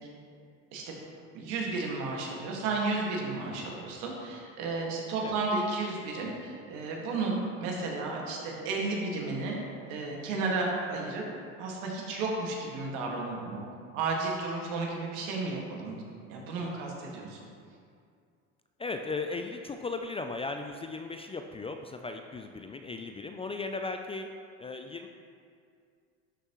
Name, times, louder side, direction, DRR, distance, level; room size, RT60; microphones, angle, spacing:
voice 1, 1.3-9.6 9.9-11.3 11.6-13.7 13.9-16.0 16.3-17.4, right 3 dB, 70° right, -1 dB, 2.0 m, -33 dB
voice 2, 18.8-24.3 24.6-25.1, left 3 dB, 15° left, 5 dB, 0.4 m, -37 dB
12.0 x 6.4 x 3.1 m, 2.3 s
hypercardioid pair, 85°, 39 cm